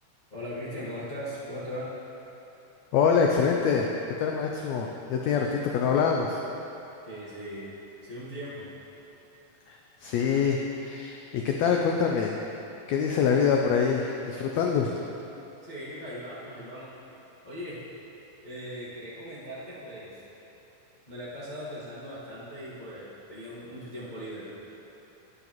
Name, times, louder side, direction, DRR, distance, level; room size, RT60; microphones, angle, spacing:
voice 1, 0.3-1.9 7.1-7.7 8.0-8.7 15.6-16.9 17.4-17.9 18.4-20.2 21.1-24.5, equal, 70° left, -10 dB, 0.4 m, -39 dB
voice 2, 2.9-3.9 4.2-6.4 9.7-12.4 12.9-14.9, left 6 dB, 85° left, 1 dB, 1.5 m, -25 dB
12.0 x 9.7 x 3.0 m, 3.0 s
omnidirectional pair, 3.7 m